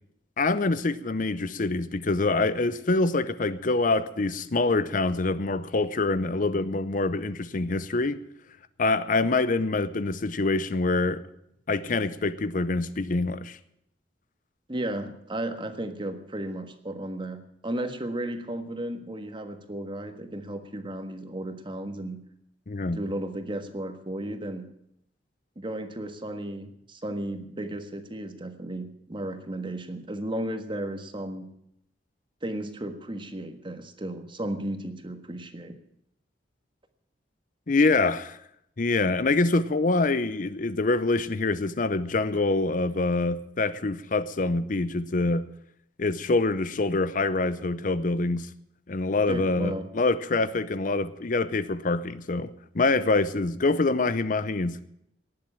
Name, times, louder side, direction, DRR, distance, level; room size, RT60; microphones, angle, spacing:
voice 1, 0.4-8.2 8.8-11.2 11.7-13.6 22.7-23.0 37.7-38.4 38.8-45.5 46.0-48.5 48.9-54.8, left 3 dB, 50° left, 0.6 m, -25 dB
voice 2, 14.7-22.3 22.9-24.7 25.5-31.5 32.4-35.8 49.3-49.9, right 1 dB, 30° right, 1.5 m, -34 dB
18.5 x 7.6 x 8.7 m
head